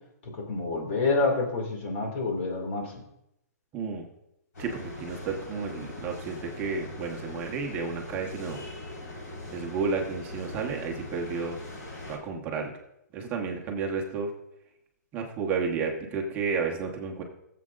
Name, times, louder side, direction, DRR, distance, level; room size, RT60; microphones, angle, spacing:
voice 1, 0.2-3.0, left 3 dB, 40° left, 2 dB, 2.4 m, -28 dB
voice 2, 3.7-4.0 4.6-8.6 9.5-11.6 12.1-12.7 13.1-14.3 15.1-17.2, right 5 dB, 20° right, 1 dB, 1.1 m, -32 dB
sound 1, 4.5-12.2, left 1 dB, 75° left, 4.5 m, -41 dB
18.5 x 7.7 x 2.5 m, 0.82 s
hypercardioid pair, 165°, 9 cm